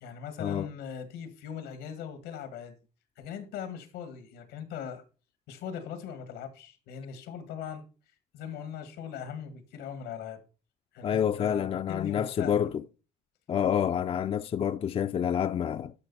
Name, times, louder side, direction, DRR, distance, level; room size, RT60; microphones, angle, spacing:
voice 1, 0.0-2.8 3.2-5.0 5.5-7.8 8.3-10.4 10.9-12.7, left 8 dB, 90° left, 1.8 m, -40 dB
voice 2, 11.0-12.7 13.5-15.9, left 9 dB, 35° left, 0.4 m, -28 dB
12.0 x 5.2 x 4.1 m
cardioid pair, 110°, 17 cm